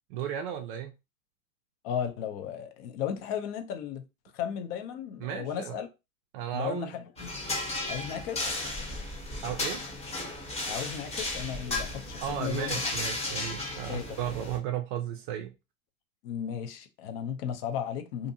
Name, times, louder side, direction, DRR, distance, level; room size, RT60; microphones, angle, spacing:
voice 1, 0.1-0.9 5.2-5.8 6.3-6.9 8.9-9.0 9.4-9.8 12.2-15.5, right 10 dB, 40° right, 0.4 m, -34 dB
voice 2, 1.8-4.0 4.3-5.9 6.5-7.3 7.9-8.5 10.6-12.7 13.9-14.1 16.2-18.3, left 9 dB, 45° left, 0.6 m, -35 dB
sound 1, 7.2-14.6, left 2 dB, 15° left, 0.9 m, -34 dB
2.5 x 2.5 x 2.7 m
hypercardioid pair, 125°, 44 cm